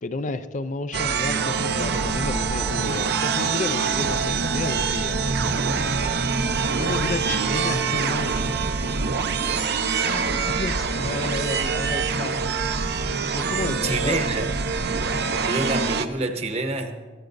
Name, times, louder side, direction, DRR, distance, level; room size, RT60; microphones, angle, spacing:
voice 1, 0.0-6.2 6.8-8.9 9.4-12.5 13.3-14.3, left 3 dB, 40° left, 0.4 m, -32 dB
sound 1, 0.9-16.1, right 5 dB, 60° right, 0.6 m, -25 dB
voice 2, 13.8-14.5 15.4-16.9, right 2 dB, 35° right, 0.9 m, -27 dB
21.0 x 14.5 x 2.6 m
head